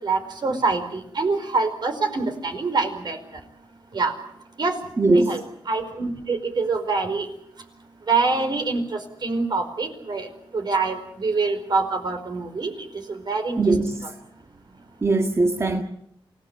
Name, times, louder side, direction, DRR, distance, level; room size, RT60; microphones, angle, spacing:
voice 1, 0.0-3.2 3.9-4.2 4.6-4.8 5.1-7.3 8.1-13.7 14.0-14.1, right 3 dB, 55° right, 4.9 m, -25 dB
voice 2, 5.0-5.4 13.6-14.0 15.0-15.8, right 2 dB, 30° right, 1.7 m, -20 dB
28.5 x 18.0 x 8.7 m
wide cardioid pair, 120°, 9 cm